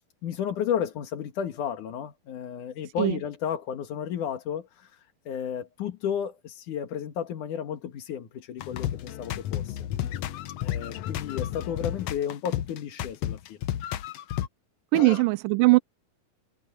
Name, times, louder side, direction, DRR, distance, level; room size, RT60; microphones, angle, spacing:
voice 1, 0.2-9.8 10.1-10.2 10.6-13.6 14.9-15.2, left 8 dB, 60° left, 3.0 m, -33 dB
sound 1, 8.6-14.5, left 12 dB, 80° left, 1.5 m, -32 dB
voice 2, 14.9-15.8, right 21 dB, 80° right, 2.0 m, -20 dB
omnidirectional pair, 4.2 m